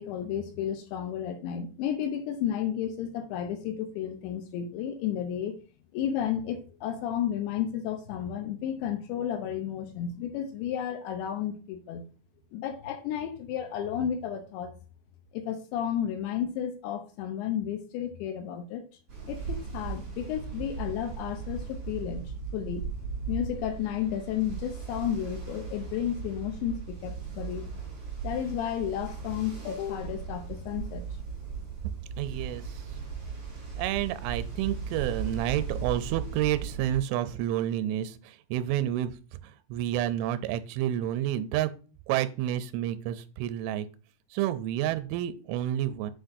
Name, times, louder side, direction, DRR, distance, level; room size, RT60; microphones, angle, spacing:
voice 1, 0.0-5.6 5.9-12.1 12.5-14.7 15.3-18.8 19.3-22.8 23.3-27.6 28.2-31.0, left 9 dB, 80° left, 7 dB, 2.8 m, -32 dB
Ocean, 19.1-37.0, right 6 dB, 25° right, 3.8 m, -37 dB
voice 2, 32.2-32.6 33.8-41.7 42.1-43.9 44.3-46.1, right 12 dB, 85° right, 12 dB, 3.0 m, -30 dB
7.9 x 6.3 x 2.7 m, 0.36 s
omnidirectional pair, 5.6 m